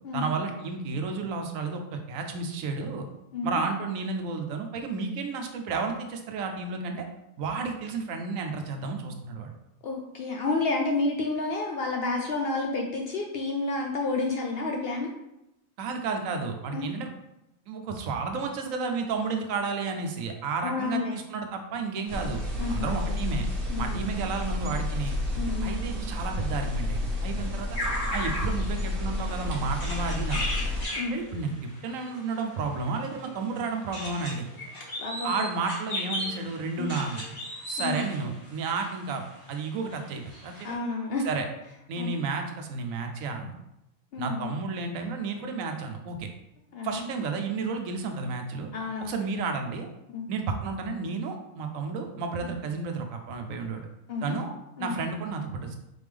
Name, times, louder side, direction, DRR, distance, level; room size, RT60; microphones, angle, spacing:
voice 1, 0.1-3.0 3.4-7.1 7.4-9.5 15.8-17.1 17.7-22.4 22.7-23.5 23.8-25.1 25.6-27.8 28.1-30.4 31.1-34.5 35.2-37.3 37.7-39.2 39.5-40.8 41.2-41.5 41.9-43.5 44.2-46.3 46.8-48.7 49.0-49.9 50.3-53.8 54.2-54.5 54.8-55.8, right 4 dB, 80° right, 4 dB, 1.0 m, -32 dB
voice 2, 9.8-15.1 16.7-16.9 20.6-21.1 22.6-23.0 23.7-24.1 25.4-25.8 31.0-31.2 35.0-35.3 36.8-36.9 37.8-38.0 40.6-41.3 42.0-42.1 44.1-44.5 46.7-47.0 48.7-49.2 50.1-50.3 54.1-54.4 54.8-55.0, left 3 dB, 65° left, 1 dB, 0.6 m, -30 dB
sound 1, 22.1-30.8, left 1 dB, 45° right, 1.1 m, -31 dB
sound 2, 27.7-39.4 39.9-40.0 40.2-40.7, left 1 dB, 90° left, 2.1 m, -36 dB
4.0 x 3.5 x 3.3 m, 0.87 s
omnidirectional pair, 1.4 m